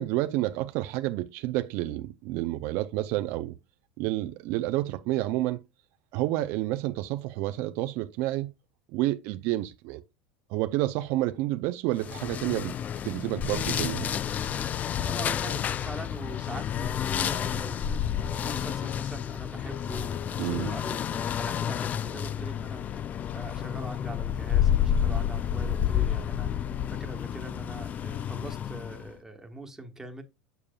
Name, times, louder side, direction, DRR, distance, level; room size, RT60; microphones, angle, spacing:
voice 1, 0.0-3.5 4.0-5.6 6.1-8.5 8.9-10.0 10.5-12.8 13.0-14.1 20.4-20.7, right 16 dB, 60° right, 0.5 m, -29 dB
sound 1, 12.0-29.1, left 9 dB, 30° left, 0.3 m, -30 dB
voice 2, 15.0-18.0 18.3-26.6 26.9-30.2, right 1 dB, 10° right, 1.3 m, -42 dB
7.2 x 6.8 x 2.3 m
supercardioid pair, 110°, 5 cm